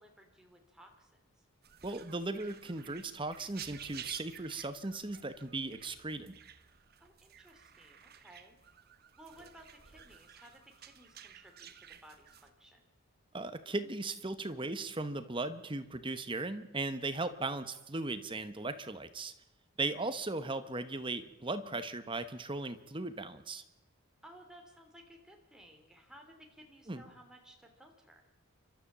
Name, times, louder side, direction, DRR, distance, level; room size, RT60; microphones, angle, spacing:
voice 1, 0.0-1.5 7.0-8.6 9.2-12.9 24.2-28.3, right 1 dB, 5° right, 2 dB, 2.8 m, -57 dB
sound 1, 1.6-12.5, right 9 dB, 45° right, 1.0 m, -52 dB
voice 2, 1.8-6.3 13.3-19.3 19.8-23.6 26.9-27.0, right 2 dB, 20° right, 11 dB, 1.0 m, -37 dB
29.5 x 13.0 x 7.3 m, 0.96 s
head